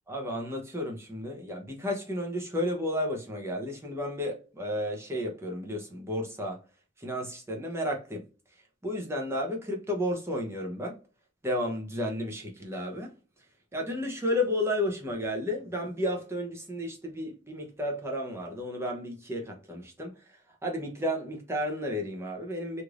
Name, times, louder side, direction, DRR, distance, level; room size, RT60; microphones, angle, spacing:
voice 1, 0.1-6.6 7.0-8.3 8.8-11.0 11.4-13.1 13.7-22.8, left 1 dB, 15° right, 0.7 m, -32 dB
3.2 x 2.6 x 2.4 m
head